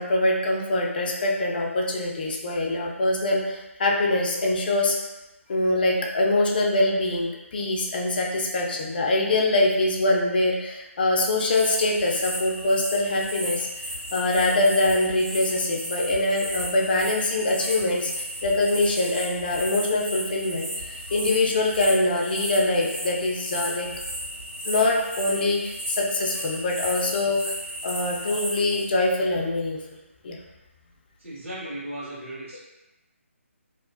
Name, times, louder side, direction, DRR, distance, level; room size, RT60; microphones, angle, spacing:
voice 1, 0.0-5.0 5.5-13.7 14.1-23.9 24.7-27.5 27.8-29.8 30.2-30.4, left 2 dB, 40° left, -1 dB, 0.4 m, -24 dB
sound 1, 11.5-28.8, equal, 35° right, 1.1 m, -34 dB
voice 2, 31.2-32.6, right 1 dB, 60° right, -8 dB, 1.4 m, -36 dB
2.9 x 2.0 x 2.4 m, 1.0 s
figure-of-eight pair, 155°, 7 cm